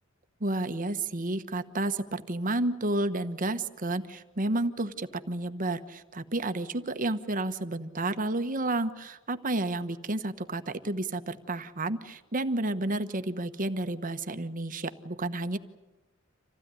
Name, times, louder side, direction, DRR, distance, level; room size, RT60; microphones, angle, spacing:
voice 1, 0.4-15.6, right 2 dB, 40° right, 10 dB, 1.2 m, -31 dB
27.5 x 16.0 x 9.9 m, 1.1 s
head